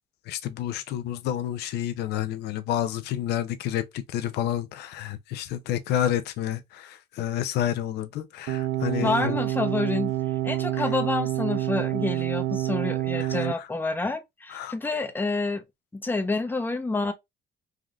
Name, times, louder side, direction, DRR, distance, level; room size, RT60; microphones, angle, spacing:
voice 1, 0.3-9.4 13.2-13.7 14.5-14.8, left 11 dB, 75° left, 0.5 m, -29 dB
sound 1, 8.5-13.5, right 15 dB, 85° right, 0.4 m, -27 dB
voice 2, 9.0-10.1 10.4-15.6 15.9-17.1, left 3 dB, 10° left, 0.6 m, -28 dB
3.4 x 2.4 x 2.2 m
cardioid pair, 110°, 17 cm